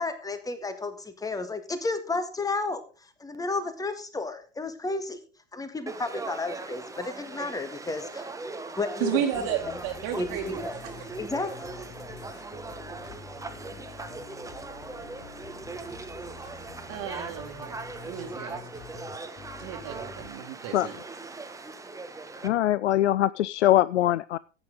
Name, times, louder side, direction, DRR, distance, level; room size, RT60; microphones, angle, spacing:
voice 1, 0.0-2.8 3.2-5.2 5.5-8.3 8.8-9.5 10.2-10.7 11.2-11.7, left 3 dB, 10° left, 10 dB, 1.8 m, -32 dB
Conversation / Crowd, 5.9-22.5, right 3 dB, 10° right, 1.3 m, -40 dB
voice 2, 9.0-10.9 16.9-18.7 19.6-21.0, right 10 dB, 45° right, 3 dB, 2.0 m, -33 dB
sound 1, 9.3-20.3, left 5 dB, 30° left, 2.5 m, -47 dB
voice 3, 22.4-24.4, left 13 dB, 70° left, 19 dB, 0.5 m, -22 dB
14.5 x 9.0 x 3.7 m, 0.37 s
figure-of-eight pair, 85°, 37 cm